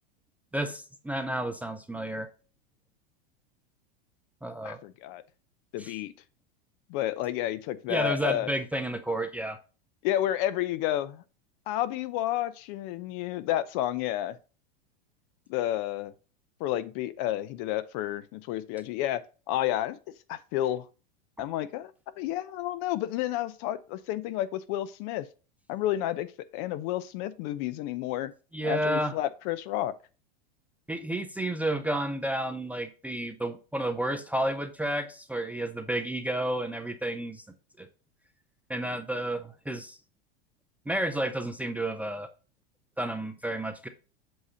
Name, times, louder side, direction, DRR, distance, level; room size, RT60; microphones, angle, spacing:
voice 1, 0.5-2.3 4.4-4.8 5.8-5.9 7.9-9.6 28.5-29.1 30.9-37.4 37.8-37.9 38.7-40.0 40.9-42.3 43.0-43.9, right 1 dB, 5° right, 0.4 m, -31 dB
voice 2, 4.6-5.2 5.7-6.1 6.9-8.5 10.0-11.2 11.7-14.4 15.5-16.1 16.6-19.2 19.5-20.0 20.3-20.9 21.4-25.3 25.7-26.3 26.5-28.3 28.6-29.9, left 13 dB, 50° left, 0.6 m, -30 dB
7.8 x 2.8 x 5.5 m
hypercardioid pair, 110°, 31 cm